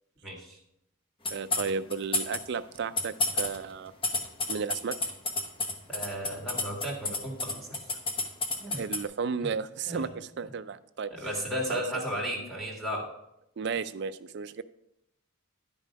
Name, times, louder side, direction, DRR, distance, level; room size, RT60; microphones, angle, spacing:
voice 1, 0.2-0.6 5.9-7.8 8.6-8.8 9.9-10.1 11.1-13.1, equal, ahead, -3 dB, 1.9 m, -34 dB
sound 1, 1.2-2.4 2.7-9.0, left 2 dB, 25° left, 0.9 m, -29 dB
voice 2, 1.3-3.9 4.5-5.0 8.7-11.1 11.7-11.8 13.6-14.6, right 5 dB, 50° right, 14 dB, 0.4 m, -33 dB
10.5 x 5.4 x 5.2 m, 0.81 s
head